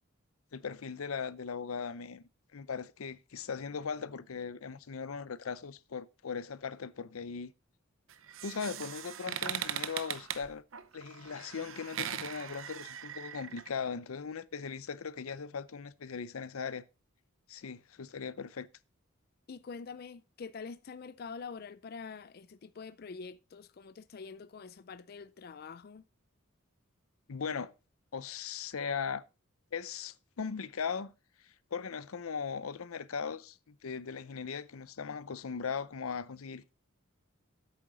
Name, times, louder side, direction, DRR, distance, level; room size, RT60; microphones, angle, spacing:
voice 1, 0.5-2.2 2.5-7.5 8.4-10.6 10.9-16.8 17.5-18.7 27.3-27.7 28.1-29.2 29.7-31.1 31.4-36.7, left 6 dB, 90° left, 0.6 m, -39 dB
sound 1, 8.1-13.7, right 10 dB, 70° right, 0.7 m, -40 dB
voice 2, 19.5-26.0, left 5 dB, 45° left, 0.4 m, -45 dB
8.6 x 7.0 x 4.9 m
head